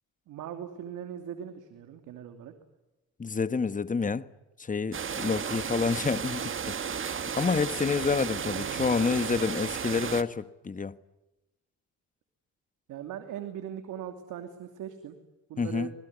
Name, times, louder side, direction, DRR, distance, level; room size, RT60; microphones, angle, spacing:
voice 1, 0.3-2.5 8.4-9.4 12.9-15.2 15.5-15.9, right 9 dB, 85° right, 2.8 m, -40 dB
voice 2, 3.2-4.2 4.6-6.7 7.3-10.9 15.6-15.9, left 5 dB, 25° left, 1.3 m, -28 dB
sound 1, 4.9-10.2, right 7 dB, 40° right, 1.6 m, -33 dB
27.0 x 21.0 x 9.6 m
cardioid pair, 90°, 30 cm